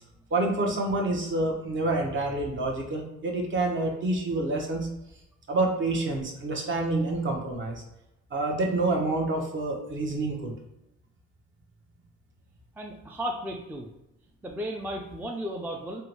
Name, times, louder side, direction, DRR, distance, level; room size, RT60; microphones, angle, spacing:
voice 1, 0.3-4.9 5.5-7.8 8.3-10.5, right 2 dB, 40° right, 0 dB, 0.8 m, -27 dB
voice 2, 12.8-13.9 14.4-16.0, equal, 5° right, 1 dB, 0.3 m, -34 dB
3.6 x 2.1 x 2.9 m, 0.89 s
cardioid pair, 90°, 30 cm